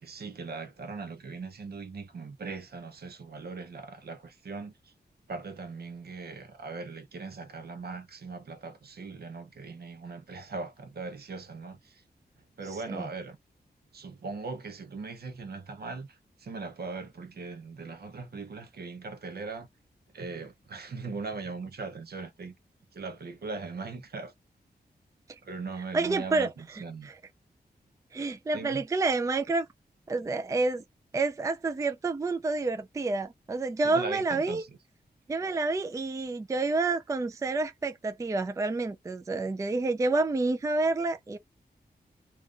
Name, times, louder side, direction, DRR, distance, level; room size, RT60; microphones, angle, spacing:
voice 1, 0.0-4.9 5.3-12.0 12.6-13.4 13.9-19.7 20.1-22.6 22.9-24.3 25.4-27.1 28.5-28.8 33.8-34.7, right 4 dB, 65° right, 0.7 m, -39 dB
voice 2, 25.9-27.1 28.1-29.7 30.1-30.8 31.1-34.6 35.3-41.4, right 3 dB, 20° right, 0.3 m, -29 dB
2.5 x 2.3 x 3.6 m
wide cardioid pair, 140°, 17 cm